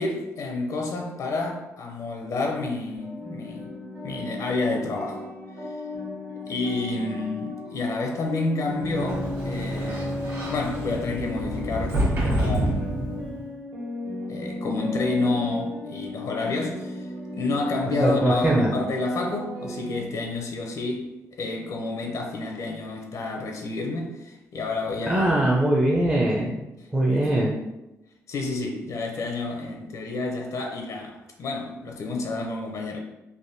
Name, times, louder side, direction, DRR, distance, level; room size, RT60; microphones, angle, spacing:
voice 1, 0.0-3.7 4.0-5.2 6.5-10.1 10.5-12.9 14.3-21.1 21.4-25.3 27.1-27.3 28.3-33.0, left 3 dB, 65° left, 2 dB, 0.5 m, -29 dB
sound 1, 2.9-20.0, left 1 dB, 75° right, 1.0 m, -36 dB
Sliding door, 8.8-13.5, right 1 dB, 50° right, 1.3 m, -28 dB
voice 2, 18.0-18.7 25.1-26.6 26.9-27.6, right 1 dB, 15° right, -3 dB, 0.5 m, -21 dB
3.4 x 2.2 x 2.6 m, 0.97 s
cardioid pair, 85°, 6 cm